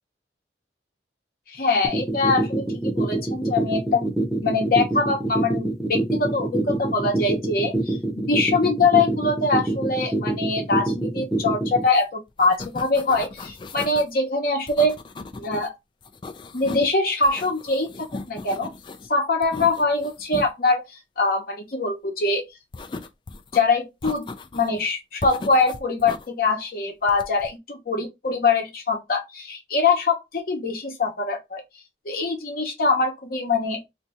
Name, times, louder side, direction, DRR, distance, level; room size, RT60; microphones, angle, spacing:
voice 1, 1.5-4.0 4.4-15.0 15.4-15.7 16.5-17.9 18.3-18.7 19.1-22.4 23.5-31.6 32.1-33.8, left 3 dB, 55° left, 0.8 m, -23 dB
sound 1, 1.8-11.8, right 2 dB, ahead, 0.7 m, -24 dB
sound 2, 11.9-12.0 12.3-14.1 14.7-15.7 16.0-16.9 17.2-19.1 19.4-20.5 22.7-23.6 24.0-24.8 25.2-26.3 27.1-27.5, left 3 dB, 25° left, 0.3 m, -37 dB
2.6 x 2.3 x 4.0 m
head